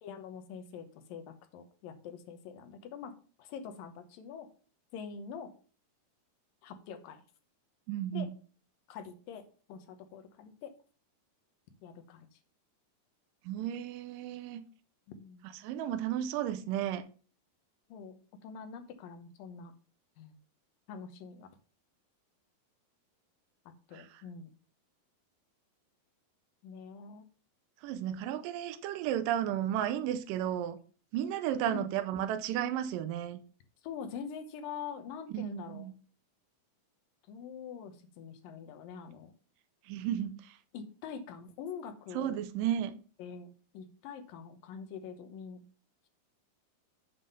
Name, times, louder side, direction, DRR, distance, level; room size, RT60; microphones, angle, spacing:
voice 1, 0.0-3.1 3.4-4.5 4.9-5.5 6.6-7.2 8.1-8.3 8.9-9.4 9.7-10.7 11.8-12.4 15.1-15.4 17.9-19.7 20.2-20.4 20.9-21.5 23.9-24.5 26.6-27.2 31.7-31.9 33.8-35.9 37.3-39.3 40.7-42.4 43.2-45.6, left 6 dB, 75° left, 2.6 m, -44 dB
voice 2, 7.9-8.3 13.5-14.6 15.6-17.0 23.9-24.1 27.8-30.8 31.1-33.4 35.3-35.9 39.9-40.6 42.1-42.9, right 11 dB, 80° right, 2.2 m, -33 dB
7.5 x 5.6 x 5.4 m
omnidirectional pair, 4.1 m